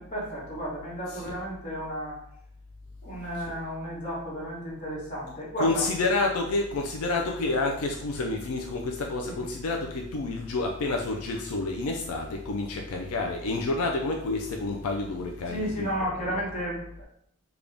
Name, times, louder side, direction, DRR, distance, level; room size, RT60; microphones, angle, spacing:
voice 1, 0.0-2.2 3.0-5.8 9.3-9.5 15.5-17.0, equal, 35° left, -6 dB, 1.2 m, -33 dB
voice 2, 5.6-15.9, left 3 dB, 80° left, 2 dB, 0.4 m, -29 dB
3.7 x 2.3 x 3.3 m, 0.69 s
head